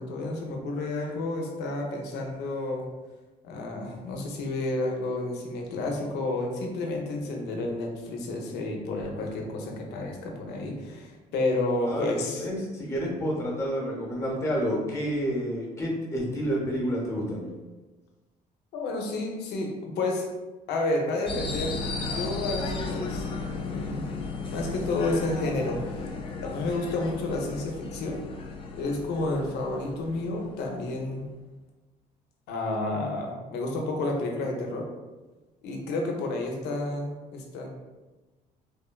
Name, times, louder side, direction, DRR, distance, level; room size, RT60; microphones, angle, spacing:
voice 1, 0.0-2.8 3.4-12.5 18.7-20.2 20.7-24.1 24.5-26.1 26.4-28.2 28.8-31.3 32.5-34.9 35.6-37.7, left 2 dB, 80° left, 1 dB, 0.6 m, -30 dB
voice 2, 11.8-17.5, equal, 15° left, -2 dB, 0.8 m, -29 dB
sound 1, 21.3-31.2, left 4 dB, 35° left, 0.4 m, -35 dB
3.3 x 2.1 x 2.2 m, 1.2 s
cardioid pair, 110°, 17 cm